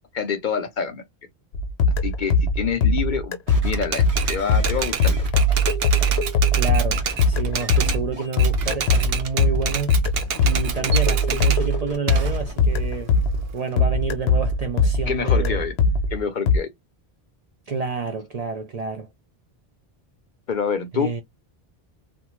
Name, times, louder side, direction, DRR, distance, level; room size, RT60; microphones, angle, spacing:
voice 1, 0.1-1.0 2.0-3.4 3.6-5.2 15.1-16.7 20.5-21.2, left 6 dB, 55° left, 0.6 m, -27 dB
sound 1, 1.5-13.5 13.8-16.6, left 2 dB, 80° left, 0.9 m, -21 dB
sound 2, 3.5-6.2 6.8-8.3 8.6-9.0 10.3-12.5 13.2-13.3, right 1 dB, 35° right, 1.1 m, -39 dB
Typewriter, 3.7-8.0 8.3-11.6 12.1-13.7, right 7 dB, 70° right, 0.8 m, -29 dB
voice 2, 6.5-7.0 7.3-9.9 10.4-13.1 13.5-15.6 17.7-19.1 20.9-21.2, right 4 dB, 50° right, 0.5 m, -29 dB
2.6 x 2.2 x 3.0 m
omnidirectional pair, 1.1 m